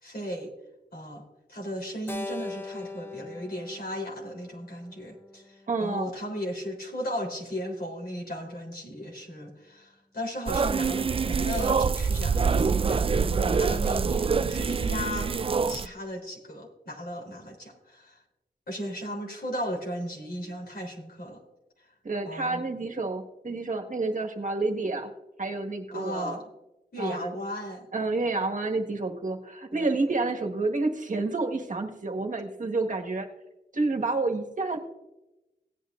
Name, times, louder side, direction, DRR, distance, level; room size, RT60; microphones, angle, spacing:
voice 1, 0.0-0.5 0.9-1.2 1.5-18.2 18.7-21.4 22.2-22.6 25.9-26.4 26.9-27.8 29.7-29.9, equal, 70° left, 0 dB, 3.6 m, -36 dB
Keyboard (musical), 2.1-6.5, left 3 dB, 15° left, 0.8 m, -41 dB
voice 2, 5.7-6.1 22.0-25.1 25.4-26.4 27.0-27.4 27.9-33.3 33.7-34.8, right 3 dB, 50° right, 3 dB, 1.6 m, -29 dB
sound 1, 10.5-15.9, right 5 dB, 35° right, 0.3 m, -25 dB
17.5 x 9.3 x 2.5 m, 0.96 s
wide cardioid pair, 70°, 16 cm